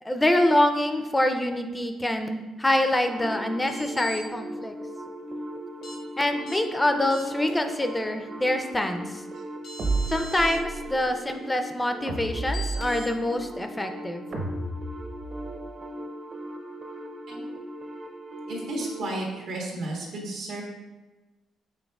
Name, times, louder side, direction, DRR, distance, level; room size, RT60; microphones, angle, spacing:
voice 1, 0.0-4.8 6.2-9.2 10.1-14.2, left 1 dB, 15° left, 6 dB, 0.4 m, -25 dB
sound 1, 3.1-19.1, equal, 35° right, 0.5 m, -39 dB
sound 2, 3.6-4.2 5.8-6.0 6.5-6.6 7.1-7.5 9.2-9.3 9.6-10.6 12.5-13.1, left 2 dB, 75° left, 0.8 m, -40 dB
sound 3, 9.8-10.9 12.1-13.3 14.3-15.6, right 3 dB, 65° right, 1.0 m, -31 dB
voice 2, 18.5-20.6, right 2 dB, 85° right, -2 dB, 1.2 m, -33 dB
6.2 x 3.5 x 2.3 m, 1.2 s
cardioid pair, 90°, 0 cm